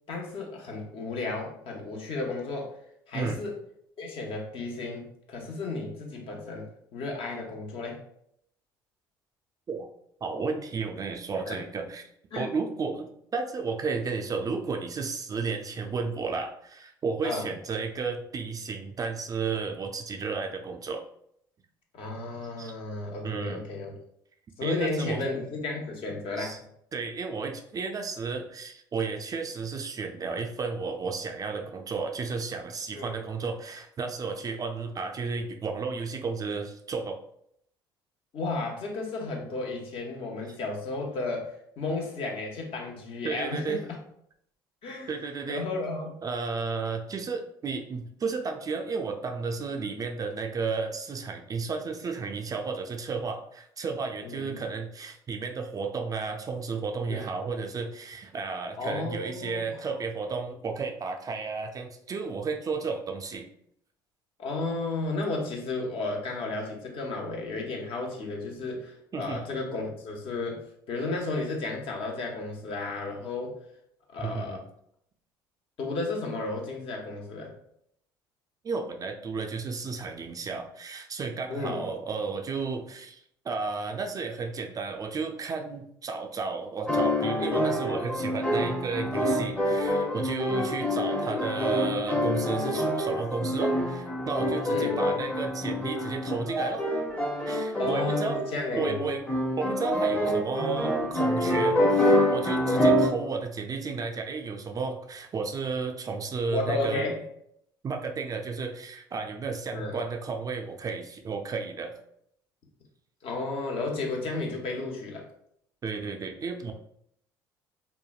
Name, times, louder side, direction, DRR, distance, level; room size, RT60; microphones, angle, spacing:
voice 1, 0.1-2.7 3.1-3.5 4.0-6.7 6.9-8.0 11.5-11.6 12.3-12.5 17.2-17.5 21.9-24.0 24.6-26.6 33.0-33.2 38.3-43.8 44.8-45.1 45.5-46.2 54.2-54.5 57.1-57.3 58.8-59.9 64.4-73.6 74.1-74.6 75.8-77.5 81.5-81.9 91.2-91.4 94.7-95.0 97.8-99.0 102.6-102.9 106.5-107.2 109.7-110.0 113.2-115.2, left 3 dB, 55° left, 0 dB, 0.8 m, -33 dB
voice 2, 10.2-21.0 22.6-22.7 23.2-23.6 24.6-25.4 26.4-26.6 26.9-37.2 43.2-43.8 45.1-45.7 46.2-63.5 69.1-69.4 74.2-74.6 78.6-96.8 97.4-98.4 98.7-99.2 99.6-107.1 107.8-112.0 115.8-116.7, right 4 dB, 30° right, 4 dB, 0.4 m, -33 dB
sound 1, 86.9-103.1, equal, 10° left, 0.7 m, -26 dB
3.1 x 2.1 x 2.3 m, 0.71 s
hypercardioid pair, 60°, 11 cm